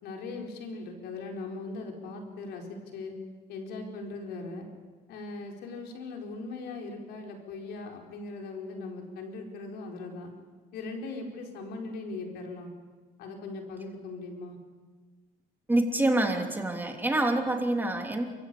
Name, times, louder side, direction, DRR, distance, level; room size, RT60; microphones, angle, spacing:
voice 1, 0.0-3.1 3.5-4.7 5.1-10.3 10.7-12.7 13.2-14.6, left 3 dB, 80° left, 1 dB, 4.7 m, -39 dB
voice 2, 15.7-18.3, right 1 dB, 10° right, 2 dB, 3.0 m, -26 dB
30.0 x 15.5 x 8.5 m, 1.4 s
cardioid pair, 110°, 17 cm